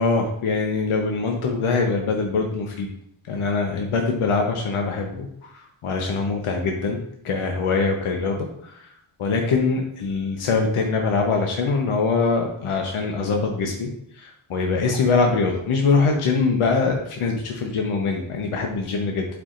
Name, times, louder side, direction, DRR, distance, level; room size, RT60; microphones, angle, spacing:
voice 1, 0.0-2.9 3.3-7.0 7.2-8.9 9.2-13.9 14.1-19.3, left 4 dB, 80° left, 2 dB, 1.0 m, -23 dB
11.0 x 4.9 x 2.5 m, 0.73 s
wide cardioid pair, 120°, 49 cm